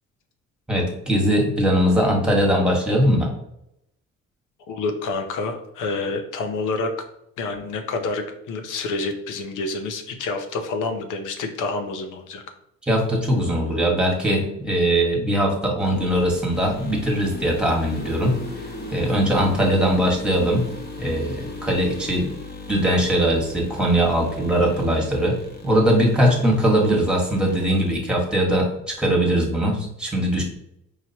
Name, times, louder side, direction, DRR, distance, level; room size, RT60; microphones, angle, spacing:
voice 1, 0.7-3.3 12.9-18.4 18.9-20.6 21.0-22.3 22.7-25.4 25.6-30.4, equal, 5° right, -1 dB, 1.3 m, -20 dB
voice 2, 4.7-6.9 7.4-12.4, left 3 dB, 85° left, 6 dB, 0.7 m, -28 dB
sound 1, 15.8-28.0, left 2 dB, 30° left, 1.0 m, -38 dB
4.8 x 2.9 x 2.8 m, 0.79 s
cardioid pair, 90°, 30 cm